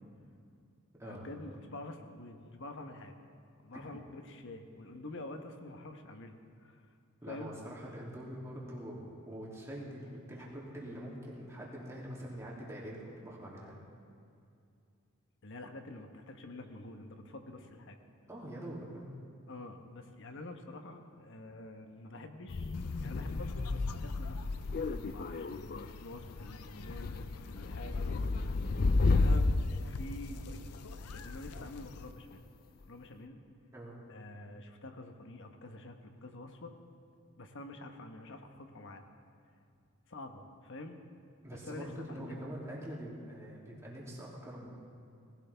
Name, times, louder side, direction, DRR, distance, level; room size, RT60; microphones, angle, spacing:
voice 1, 1.0-3.2 3.6-6.9 7.3-7.5 15.4-18.0 19.5-28.3 29.1-30.7 31.0-32.4 32.9-33.4 34.1-36.7 37.4-39.0 40.1-41.0 41.5-42.5, left 2 dB, 55° left, 5 dB, 1.1 m, -47 dB
voice 2, 7.2-13.7 18.3-19.1 33.7-34.0 41.4-44.7, equal, 15° right, -5 dB, 2.8 m, -44 dB
sound 1, 22.5-32.0, left 3 dB, 40° left, 0.4 m, -32 dB
sound 2, 22.7-32.1, left 4 dB, 85° left, 0.6 m, -50 dB
19.0 x 16.0 x 3.5 m, 2.4 s
head